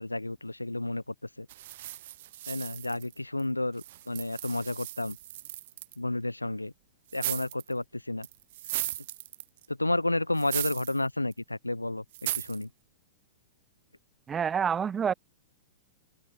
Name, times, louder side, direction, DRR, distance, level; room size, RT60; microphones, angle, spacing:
voice 1, 0.0-1.5 2.5-5.2 6.0-6.7 7.1-8.3 9.7-12.0 12.3-12.7, left 2 dB, 85° left, 0.8 m, -31 dB
sound 1, 1.5-3.4 3.8-6.0 7.1-7.7 8.2-9.7 10.4-11.0 11.3-11.4 12.1-12.6, right 15 dB, 50° right, 2.8 m, -37 dB
voice 2, 14.3-15.1, right 7 dB, 20° right, 0.7 m, -27 dB
figure-of-eight pair, 100°, 0 cm